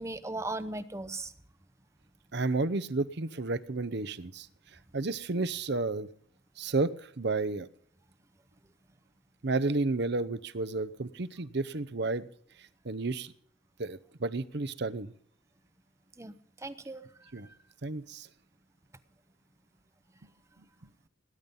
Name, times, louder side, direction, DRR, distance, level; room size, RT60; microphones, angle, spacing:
voice 1, 0.0-1.3 16.2-17.1, right 2 dB, 15° right, 12 dB, 0.7 m, -38 dB
voice 2, 2.3-4.5 4.9-6.1 6.6-7.7 9.4-12.3 12.6-13.3 13.8-15.1 17.3-17.5 17.8-18.3, right 3 dB, 55° right, 14 dB, 0.8 m, -32 dB
19.0 x 10.5 x 5.5 m, 0.65 s
head